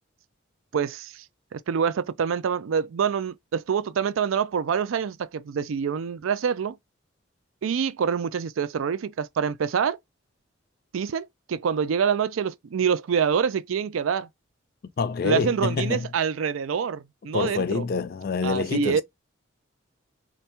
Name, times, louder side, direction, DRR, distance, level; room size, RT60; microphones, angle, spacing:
voice 1, 0.7-1.2 1.5-6.8 7.6-10.0 10.9-14.3 15.2-17.8 18.4-19.0, right 7 dB, 85° right, 0.4 m, -26 dB
voice 2, 15.0-16.1 17.3-19.0, left 5 dB, 50° left, 0.3 m, -26 dB
3.4 x 2.2 x 4.2 m
head